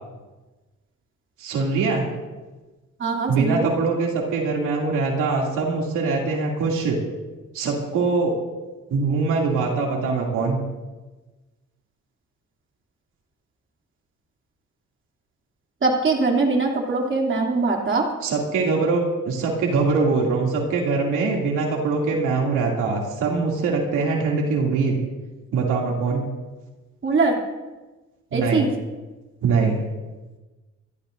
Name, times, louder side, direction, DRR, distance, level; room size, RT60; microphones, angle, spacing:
voice 1, 1.4-2.1 3.3-7.0 7.5-8.3 8.9-10.6 18.2-25.0 25.5-26.2 28.3-28.7 29.4-29.8, right 4 dB, 90° right, -1 dB, 2.7 m, -23 dB
voice 2, 3.0-3.7 15.8-18.1 27.0-27.4 28.3-28.7, right 3 dB, 40° right, -1 dB, 2.9 m, -22 dB
27.5 x 12.0 x 2.6 m, 1.2 s
cardioid pair, 90°, 30 cm